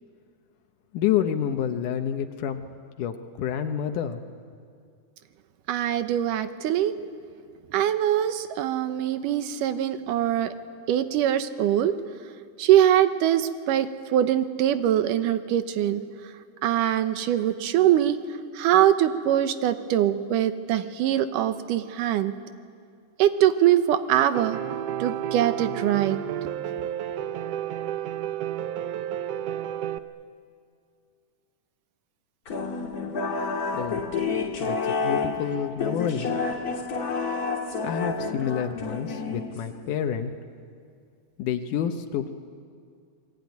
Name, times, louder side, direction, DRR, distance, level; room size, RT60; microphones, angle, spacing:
voice 1, 0.9-2.6 3.0-4.2 33.7-34.2 34.6-36.3 37.8-40.3 41.4-42.3, left 9 dB, 80° left, 6 dB, 2.5 m, -28 dB
voice 2, 5.7-6.9 7.7-10.5 10.9-11.9 12.6-16.0 16.6-18.2 18.5-22.3 23.2-24.6 25.0-26.2, right 11 dB, 90° right, 10 dB, 2.6 m, -23 dB
Piano, 24.3-30.0, right 11 dB, 75° right, 1.5 m, -31 dB
sound 1, 32.5-39.8, left 4 dB, 35° left, 1.9 m, -29 dB
28.0 x 21.0 x 9.4 m, 2.2 s
omnidirectional pair, 3.6 m